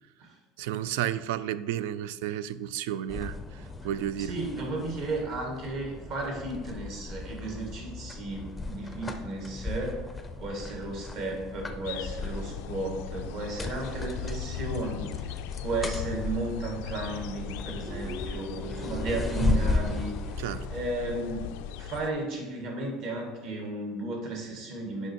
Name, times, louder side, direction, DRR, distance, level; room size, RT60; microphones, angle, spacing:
voice 1, 0.6-4.4 20.4-20.7, right 11 dB, 85° right, 16 dB, 0.3 m, -32 dB
sound 1, 3.1-20.9, left 3 dB, 10° left, 0.5 m, -35 dB
voice 2, 4.2-10.1 10.4-20.4 20.7-25.1, right 2 dB, 50° right, 0 dB, 1.8 m, -34 dB
sound 2, 11.8-22.1, left 10 dB, 70° left, 0.3 m, -39 dB
Guitar, 17.9-21.2, left 1 dB, 25° right, 1.5 m, -43 dB
6.4 x 5.4 x 4.5 m, 1.3 s
cardioid pair, 170°, 0 cm